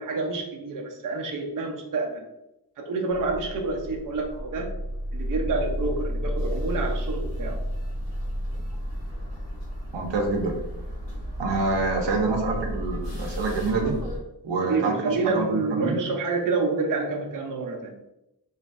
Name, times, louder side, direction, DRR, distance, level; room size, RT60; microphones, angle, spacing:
voice 1, 0.0-2.3 2.8-4.7 5.1-7.6 14.6-18.0, right 3 dB, 50° right, 1 dB, 0.5 m, -28 dB
sound 1, 3.1-14.2, equal, 85° left, 1.2 m, -32 dB
voice 2, 9.9-10.5 11.4-14.0 14.4-15.9, right 3 dB, 90° right, 1 dB, 0.7 m, -26 dB
3.0 x 2.5 x 2.4 m, 0.89 s
wide cardioid pair, 80°, 42 cm